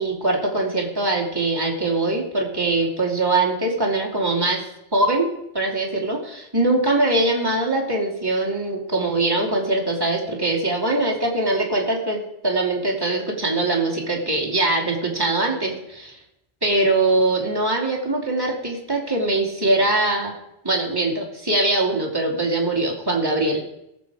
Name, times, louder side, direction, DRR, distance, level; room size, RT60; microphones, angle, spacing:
voice 1, 0.0-4.6 4.9-16.2 16.6-20.3 20.6-23.6, right 2 dB, 20° right, -3 dB, 2.8 m, -22 dB
18.0 x 7.5 x 4.9 m, 0.85 s
omnidirectional pair, 1.1 m